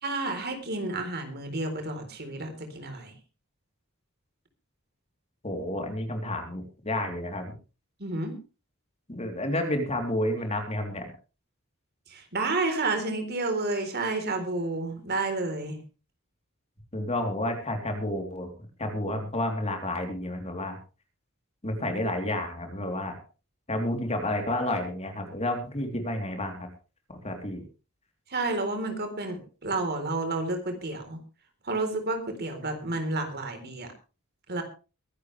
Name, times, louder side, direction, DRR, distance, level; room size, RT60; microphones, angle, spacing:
voice 1, 0.0-3.1 8.0-8.4 12.1-15.8 28.3-31.2 31.6-33.9 34.5-34.6, right 2 dB, 50° right, 6 dB, 3.9 m, -30 dB
voice 2, 5.4-7.5 9.1-11.1 16.9-18.5 18.8-20.8 21.6-23.2 23.7-26.7 27.1-27.6, left 1 dB, 30° left, 4 dB, 3.4 m, -30 dB
23.0 x 11.5 x 3.3 m, 0.33 s
head